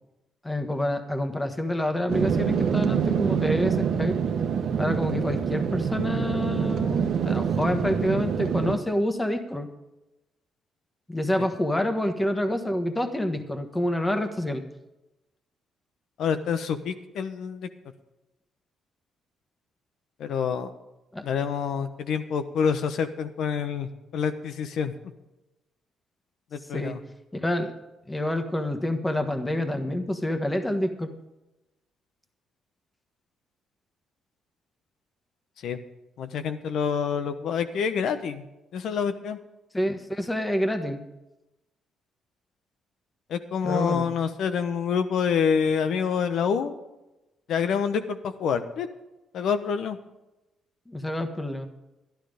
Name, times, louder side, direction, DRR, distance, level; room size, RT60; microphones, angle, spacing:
voice 1, 0.4-4.2 4.8-9.7 11.1-14.6 21.1-21.2 26.7-26.9 27.3-27.7 28.1-31.1 39.7-41.0 43.6-44.1 50.9-51.7, left 1 dB, 10° left, 7 dB, 1.4 m, -27 dB
sound 1, 2.1-8.8, right 7 dB, 70° right, 1.1 m, -26 dB
voice 2, 16.2-17.7 20.2-20.7 21.2-24.9 26.5-27.0 35.6-35.8 36.2-38.4 38.7-39.4 43.3-46.8 47.5-48.9 49.3-50.0, left 6 dB, 75° left, 10 dB, 1.0 m, -27 dB
12.0 x 11.5 x 5.1 m, 1.0 s
cardioid pair, 90°, 0 cm